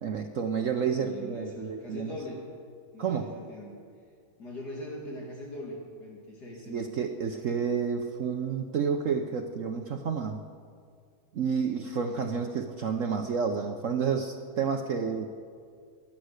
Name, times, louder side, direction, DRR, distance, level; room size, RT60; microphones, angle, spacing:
voice 1, 0.0-2.2 3.0-3.3 6.7-10.4 11.3-15.3, right 6 dB, 65° right, 5 dB, 0.8 m, -30 dB
voice 2, 1.0-2.4 2.9-3.8 4.4-6.9, left 1 dB, 55° left, -2 dB, 2.8 m, -41 dB
22.0 x 8.5 x 6.5 m, 2.1 s
omnidirectional pair, 2.1 m